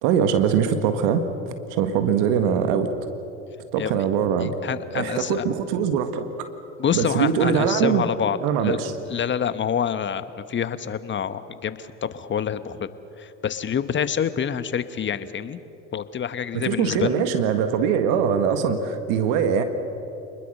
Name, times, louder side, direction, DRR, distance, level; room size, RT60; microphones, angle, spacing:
voice 1, 0.0-1.2 1.7-2.9 3.7-4.5 4.9-6.5 6.9-8.0 8.4-8.9 16.5-19.6, right 7 dB, 70° right, 8 dB, 1.8 m, -22 dB
voice 2, 4.4-5.4 6.8-8.8 9.1-15.6 15.9-17.2, left 8 dB, 30° left, 12 dB, 1.2 m, -27 dB
27.0 x 21.0 x 6.7 m, 3.0 s
hypercardioid pair, 80°, 37 cm